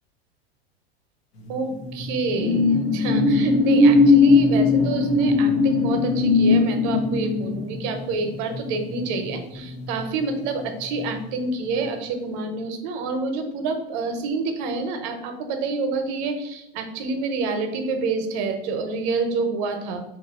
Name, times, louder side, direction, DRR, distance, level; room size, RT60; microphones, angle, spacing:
sound 1, 1.5-10.4 10.8-11.0, left 3 dB, 85° left, 0.9 m, -20 dB
voice 1, 1.5-20.0, right 3 dB, 55° right, 6 dB, 0.7 m, -28 dB
2.9 x 2.4 x 4.0 m, 0.87 s
hypercardioid pair, 100°, 32 cm